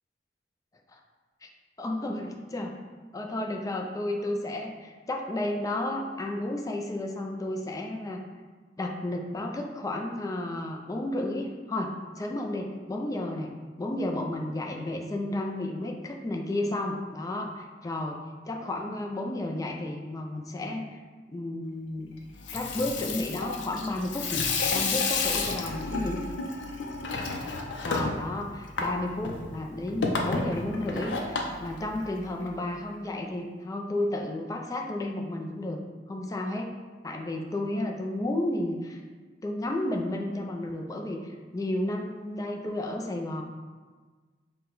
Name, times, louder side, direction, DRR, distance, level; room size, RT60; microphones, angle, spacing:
voice 1, 1.8-2.7 3.1-8.2 8.8-13.5 13.8-18.2 18.5-21.0 21.3-22.1 22.5-24.5 24.7-26.2 27.8-35.8 36.1-36.7 37.0-39.0 39.4-43.4, left 1 dB, 20° left, 1 dB, 0.4 m, -32 dB
Water tap faucet / Sink (filling or washing), 22.3-32.5, left 4 dB, 75° left, 0.5 m, -31 dB
6.0 x 2.2 x 3.8 m, 1.4 s
head